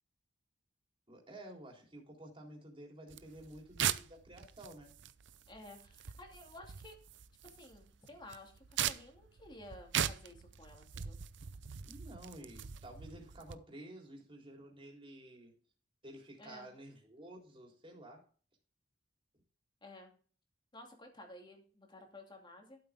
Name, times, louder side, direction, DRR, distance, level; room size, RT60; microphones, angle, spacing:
voice 1, 1.1-4.9 11.8-15.5 16.0-18.3, right 1 dB, 30° right, 0 dB, 3.7 m, -52 dB
sound 1, 3.1-13.6, right 9 dB, 65° right, 0.6 m, -41 dB
voice 2, 5.5-7.0 7.4-11.2 16.4-16.7 19.8-20.1 20.7-22.8, left 1 dB, 25° left, 2 dB, 2.6 m, -53 dB
12.5 x 7.9 x 3.6 m, 0.41 s
head